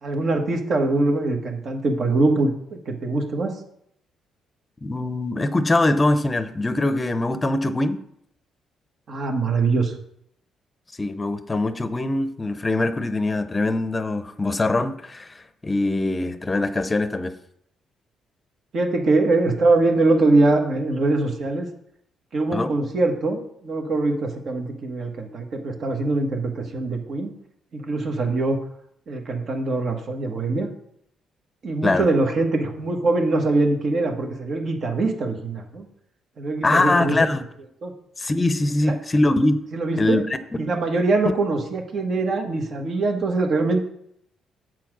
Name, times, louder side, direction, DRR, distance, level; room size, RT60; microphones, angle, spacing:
voice 1, 0.0-3.6 9.1-9.9 18.7-21.7 22.3-27.3 27.7-28.6 29.1-30.7 31.6-35.8 36.4-37.2 37.8-37.9 38.8-38.9 39.7-40.2 40.6-43.8, right 2 dB, 55° right, 3 dB, 1.6 m, -23 dB
voice 2, 4.8-8.0 11.0-17.3 22.5-22.7 31.8-32.1 36.6-37.4 38.2-39.6 40.0-40.2 41.2-41.3, left 2 dB, 25° left, 11 dB, 0.7 m, -22 dB
7.8 x 4.5 x 6.1 m, 0.71 s
cardioid pair, 90°, 0 cm